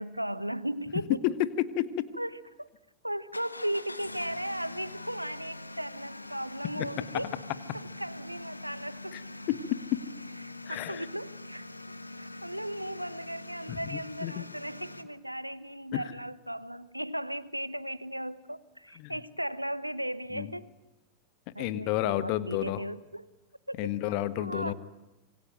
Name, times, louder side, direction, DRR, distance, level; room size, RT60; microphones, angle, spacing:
voice 1, 0.0-1.2 2.2-2.7 3.0-7.3 7.7-9.1 10.4-11.6 12.2-20.7 21.5-23.3 23.7-23.9 24.4-24.7, right 1 dB, 90° right, 18 dB, 1.0 m, -36 dB
voice 2, 1.2-2.1 6.8-6.9 9.1-9.2 9.5-9.6 10.7-11.0 13.7-14.4 15.9-16.0 19.0-19.1 20.3-20.5 21.6-22.8 23.8-24.7, left 13 dB, 45° left, 14 dB, 1.5 m, -31 dB
sound 1, 3.3-15.0, left 2 dB, 85° left, 1.4 m, -44 dB
26.5 x 23.0 x 9.1 m, 1.0 s
figure-of-eight pair, 90°, 0 cm